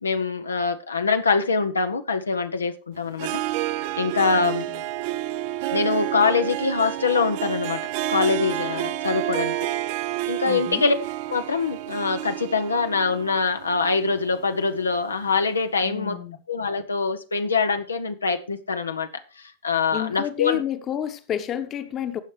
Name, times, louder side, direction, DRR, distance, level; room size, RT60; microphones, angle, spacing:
voice 1, 0.0-3.4 4.0-4.6 5.7-7.8 8.1-9.5 10.3-11.0 11.3-16.2 16.5-19.1 19.4-20.6, left 4 dB, 75° left, 0.8 m, -24 dB
Harp, 3.1-15.0, right 15 dB, 50° right, 0.7 m, -30 dB
voice 2, 4.3-4.8 10.4-10.8 15.8-16.4 19.9-22.2, left 10 dB, 30° left, 1.2 m, -30 dB
17.0 x 6.5 x 3.3 m
figure-of-eight pair, 90°, 0 cm